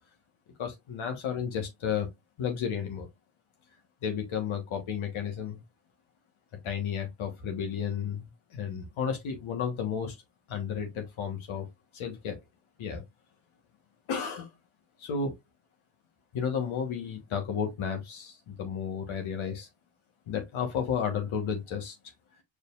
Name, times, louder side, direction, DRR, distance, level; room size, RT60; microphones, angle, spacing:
voice 1, 0.6-2.1 2.4-3.1 4.0-5.6 6.6-10.2 10.5-11.7 11.9-12.4 12.8-13.0 14.1-14.5 15.0-15.4 16.3-19.7 20.3-22.0, left 7 dB, 75° left, 1.3 m, -32 dB
4.9 x 3.3 x 2.4 m
supercardioid pair, 60°, 48 cm